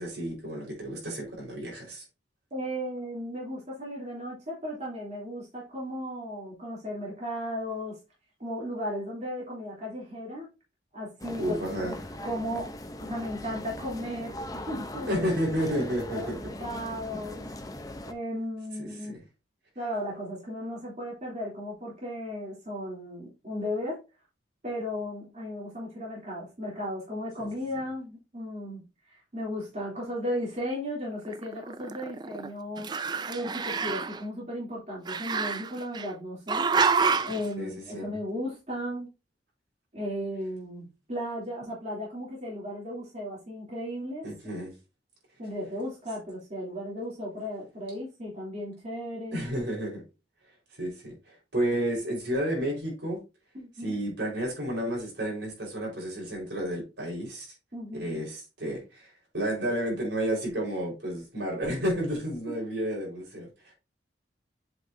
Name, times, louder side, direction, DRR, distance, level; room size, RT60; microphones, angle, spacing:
voice 1, 0.0-2.0 11.4-12.0 15.1-16.3 18.8-18.9 27.4-27.5 37.6-38.2 44.2-44.7 49.3-50.0 50.8-53.2 53.8-57.5 57.9-63.5, equal, 80° right, 4.4 m, -31 dB
voice 2, 2.5-8.0 8.4-10.5 10.9-12.0 12.2-15.1 15.8-16.3 16.6-17.4 18.0-19.1 19.7-24.0 24.6-28.8 29.1-32.9 33.3-36.9 37.2-39.1 39.9-44.3 45.4-49.5 53.5-54.0 57.7-58.2, equal, 40° right, 3.0 m, -35 dB
sound 1, 11.2-18.1, left 1 dB, 20° left, 0.7 m, -40 dB
Growling, 31.2-32.5 32.8-34.2 35.1-36.1 36.5-37.4, right 5 dB, 25° right, 0.3 m, -28 dB
7.8 x 5.9 x 2.7 m
head